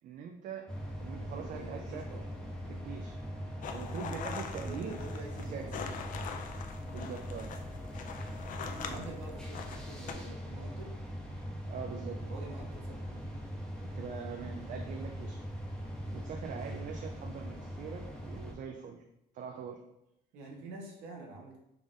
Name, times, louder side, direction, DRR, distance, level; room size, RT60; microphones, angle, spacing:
voice 1, 0.0-0.7 1.0-2.0 2.7-3.2 3.7-4.9 5.4-5.7 6.9-7.5 11.7-12.2 13.8-15.4 15.8-19.0 19.3-19.8, right 7 dB, 50° right, 3 dB, 0.4 m, -43 dB
sound 1, 0.7-18.5, equal, 5° left, 0.7 m, -41 dB
voice 2, 1.3-2.2 3.6-3.8 4.4-6.3 6.9-7.2 8.5-10.9 11.8-13.3 20.3-21.6, right 2 dB, 85° right, 0 dB, 0.9 m, -48 dB
sound 2, 3.6-10.1, left 6 dB, 50° left, 0.4 m, -43 dB
3.5 x 2.4 x 3.6 m, 0.84 s
cardioid pair, 110°, 17 cm